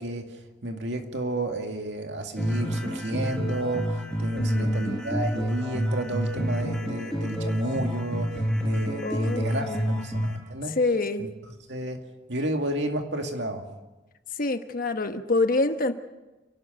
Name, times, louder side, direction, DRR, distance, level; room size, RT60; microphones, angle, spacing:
voice 1, 0.0-10.8 11.2-11.3 11.7-12.0 12.3-13.6, right 1 dB, 70° right, 4 dB, 2.3 m, -31 dB
sound 1, 2.4-10.4, equal, 5° left, 5.0 m, -28 dB
voice 2, 4.4-5.0 9.0-10.0 10.8-11.3 14.4-15.9, left 2 dB, 50° left, 8 dB, 1.3 m, -27 dB
29.0 x 12.0 x 7.8 m, 1.1 s
head